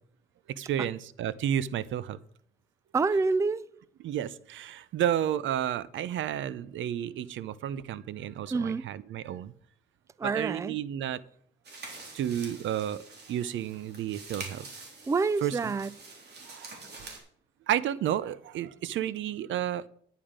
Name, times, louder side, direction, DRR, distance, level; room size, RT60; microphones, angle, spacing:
voice 1, 0.5-2.2 4.0-9.5 10.2-11.2 12.1-13.0 13.3-14.6 15.4-15.7 16.5-16.7 17.7-19.9, right 10 dB, 75° right, 0.7 m, -31 dB
voice 2, 2.9-3.7 8.5-8.8 10.2-10.8 15.1-15.9, right 4 dB, 15° right, 0.4 m, -27 dB
sound 1, 11.6-17.2, right 3 dB, 55° right, 3.6 m, -46 dB
10.5 x 9.3 x 5.0 m
cardioid pair, 90°, 20 cm